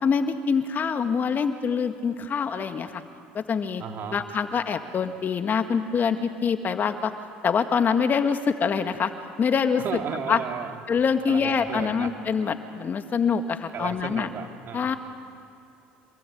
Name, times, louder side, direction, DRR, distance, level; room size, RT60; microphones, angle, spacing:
voice 1, 0.0-3.0 3.3-3.8 4.1-7.1 7.4-9.1 9.4-10.0 10.3-10.4 10.9-14.3 14.7-15.0, left 6 dB, 40° left, 7 dB, 1.9 m, -25 dB
voice 2, 3.8-4.2 9.8-10.8 11.3-12.1 13.7-15.0, right 7 dB, 50° right, 4 dB, 2.8 m, -34 dB
26.5 x 21.5 x 8.7 m, 2.7 s
supercardioid pair, 85°, 5 cm